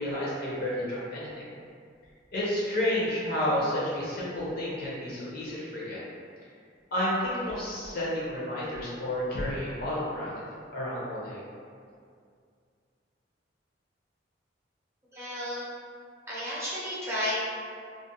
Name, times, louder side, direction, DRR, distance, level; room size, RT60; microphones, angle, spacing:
voice 1, 0.0-1.4 2.3-6.0 6.9-10.3 10.7-11.4, left 1 dB, 55° left, -7 dB, 0.7 m, -31 dB
voice 2, 15.1-15.7 16.3-17.3, equal, 15° right, -9 dB, 0.6 m, -32 dB
2.4 x 2.1 x 2.7 m, 2.2 s
head